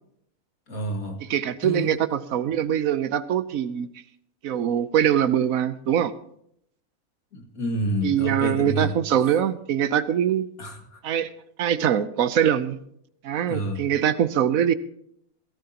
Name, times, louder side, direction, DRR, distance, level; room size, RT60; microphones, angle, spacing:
voice 1, 0.7-1.2 1.6-2.0 7.3-8.9 10.6-11.0 13.5-13.9, equal, 80° left, 2.6 m, -29 dB
voice 2, 1.2-3.9 4.4-6.1 8.0-10.5 11.0-11.3 11.6-12.8 13.2-14.7, right 9 dB, 75° right, 1.2 m, -23 dB
18.0 x 16.0 x 2.9 m
omnidirectional pair, 1.5 m